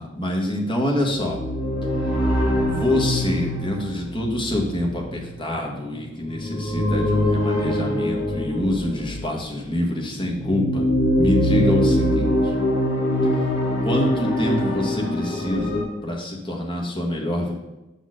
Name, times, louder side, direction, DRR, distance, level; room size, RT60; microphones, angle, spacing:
voice 1, 0.0-1.4 2.7-10.8 11.1-12.5 13.8-17.5, left 1 dB, 25° left, -1 dB, 1.2 m, -26 dB
sound 1, 1.0-9.5 10.1-15.8, left 1 dB, 55° left, 1.8 m, -23 dB
6.1 x 4.1 x 6.4 m, 1.0 s
head